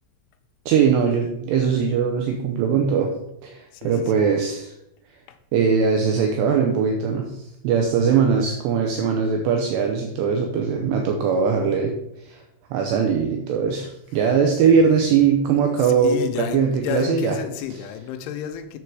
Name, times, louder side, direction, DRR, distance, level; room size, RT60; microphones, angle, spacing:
voice 1, 0.7-3.1 3.4-4.7 5.5-12.4 12.7-17.4, right 6 dB, 80° right, 2 dB, 2.5 m, -21 dB
voice 2, 3.7-4.2 5.3-5.4 14.6-15.3 15.8-18.8, left 10 dB, 80° left, 6 dB, 3.0 m, -31 dB
7.5 x 7.1 x 4.7 m, 0.81 s
omnidirectional pair, 5.8 m